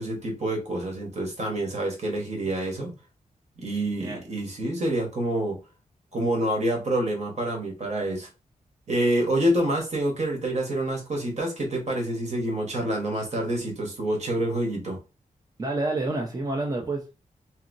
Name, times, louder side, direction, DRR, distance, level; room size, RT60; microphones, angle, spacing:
voice 1, 0.0-2.9 3.6-5.6 6.1-8.3 8.9-15.0, right 1 dB, 55° right, 1.2 m, -27 dB
voice 2, 15.6-17.1, right 2 dB, 25° right, 0.6 m, -28 dB
2.9 x 2.8 x 2.5 m
wide cardioid pair, 130°, 14 cm